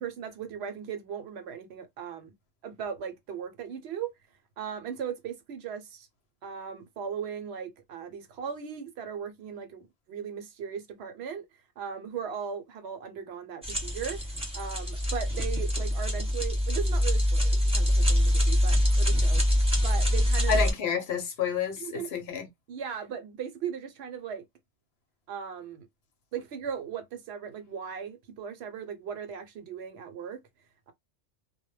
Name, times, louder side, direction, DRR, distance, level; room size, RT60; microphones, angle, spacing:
voice 1, 0.0-2.3 2.6-4.1 4.6-6.1 6.4-11.5 11.8-14.2 14.5-19.4 19.8-20.6 21.8-22.1 22.7-24.4 25.3-25.9 26.3-30.4, right 7 dB, 70° right, 0.8 m, -38 dB
sound 1, 13.6-20.7, equal, 5° right, 0.9 m, -24 dB
voice 2, 20.5-22.5, left 6 dB, 65° left, 0.9 m, -29 dB
2.1 x 2.1 x 3.1 m
omnidirectional pair, 1.2 m